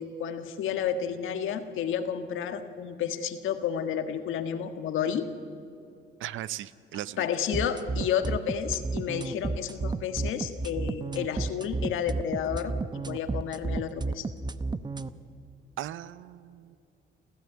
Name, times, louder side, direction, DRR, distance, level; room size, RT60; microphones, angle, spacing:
voice 1, 0.0-5.3 7.2-12.7 13.1-14.3, left 8 dB, 85° left, 8 dB, 1.6 m, -31 dB
voice 2, 6.2-7.3 15.8-16.8, right 13 dB, 80° right, 16 dB, 0.7 m, -38 dB
sound 1, 7.5-15.1, right 3 dB, 20° right, 0.8 m, -31 dB
27.5 x 14.5 x 9.7 m, 2.6 s
cardioid pair, 90°, 20 cm